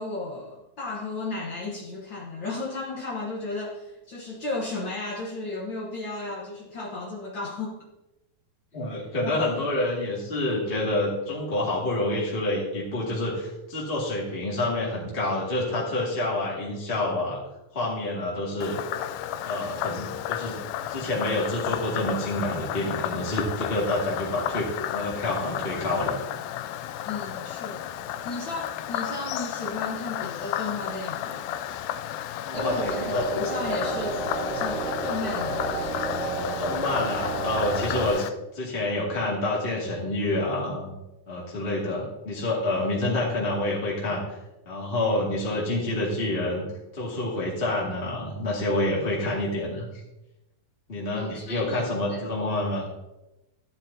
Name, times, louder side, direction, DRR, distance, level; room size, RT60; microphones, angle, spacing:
voice 1, 0.0-7.8 9.2-9.5 27.0-27.9 28.2-31.5 32.5-34.2 34.5-36.1 51.1-52.2, left 3 dB, 65° left, -4 dB, 1.1 m, -34 dB
voice 2, 8.7-17.4 17.7-18.8 19.4-20.6 20.9-26.2 32.5-33.2 36.6-38.3 38.5-40.9 41.3-44.2 44.7-46.6 46.9-49.9 50.9-52.8, left 1 dB, 20° left, -5 dB, 1.8 m, -28 dB
Frog, 18.6-38.3, left 11 dB, 85° left, 2.3 m, -33 dB
sound 1, 32.5-38.1, right 3 dB, 80° right, 3.2 m, -31 dB
14.0 x 10.0 x 2.8 m, 0.97 s
omnidirectional pair, 4.1 m